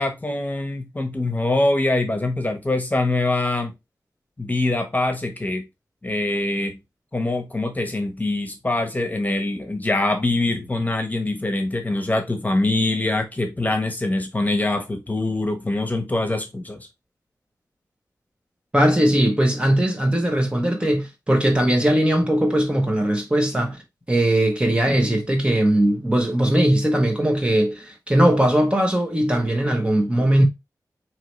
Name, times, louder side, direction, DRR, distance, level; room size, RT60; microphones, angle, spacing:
voice 1, 0.0-3.7 4.4-5.6 6.0-6.7 7.1-16.9, left 2 dB, 25° left, 1.1 m, -24 dB
voice 2, 18.7-23.8 24.1-30.4, right 1 dB, 15° right, 0.9 m, -19 dB
4.6 x 3.0 x 3.2 m
wide cardioid pair, 80°, 7 cm